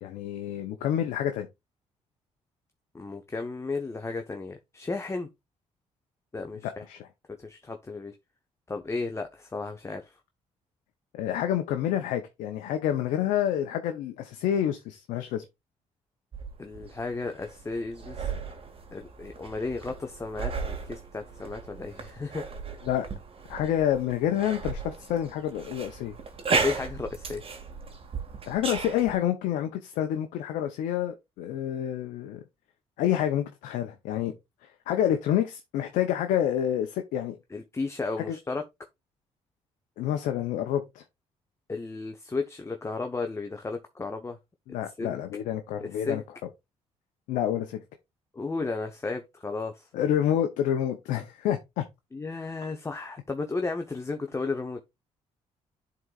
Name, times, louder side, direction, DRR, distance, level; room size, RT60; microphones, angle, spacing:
voice 1, 0.0-1.5 6.6-7.1 11.1-15.4 22.8-23.1 23.5-26.1 28.5-32.4 33.0-34.3 34.6-37.4 38.2-38.4 40.0-41.0 44.7-46.2 47.3-47.8 49.9-51.8, left 10 dB, 90° left, 0.7 m, -28 dB
voice 2, 2.9-5.3 6.3-6.8 7.4-8.1 8.7-10.1 16.6-18.3 18.9-22.4 26.5-27.4 37.5-38.6 41.7-44.4 45.0-45.2 45.8-46.2 48.3-49.8 52.1-54.8, left 3 dB, 20° left, 0.8 m, -34 dB
sound 1, 16.3-29.1, right 5 dB, 45° right, 1.8 m, -36 dB
11.0 x 3.9 x 2.4 m
cardioid pair, 75°, 13 cm